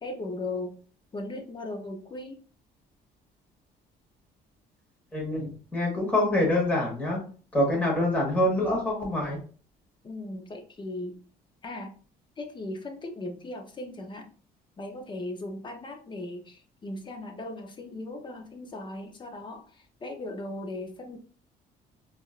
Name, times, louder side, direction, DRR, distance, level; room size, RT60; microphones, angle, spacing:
voice 1, 0.0-0.8 1.1-2.4 10.0-11.2 11.6-11.9 12.4-14.3 14.8-21.2, left 2 dB, 30° left, 4 dB, 0.7 m, -38 dB
voice 2, 5.1-7.2 7.5-9.4, left 1 dB, 10° left, -3 dB, 1.5 m, -25 dB
3.7 x 2.5 x 2.5 m, 0.40 s
cardioid pair, 110°, 17 cm